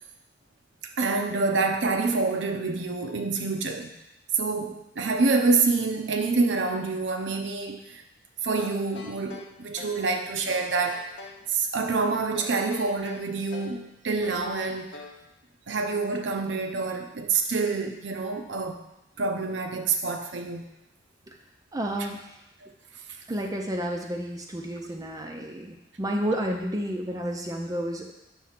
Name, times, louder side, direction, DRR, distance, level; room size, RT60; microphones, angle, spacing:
voice 1, 1.0-3.9 4.3-8.0 8.4-11.1 11.5-14.9 15.7-18.8 19.2-20.6 22.6-22.7, right 3 dB, 90° right, 5 dB, 0.7 m, -27 dB
sound 1, 8.6-10.1 10.5-11.4 12.3-13.8 14.2-15.2, left 3 dB, 85° left, 0.9 m, -44 dB
voice 2, 21.7-22.3 23.3-28.1, equal, 20° right, 2 dB, 0.5 m, -31 dB
6.1 x 3.5 x 5.8 m, 0.88 s
head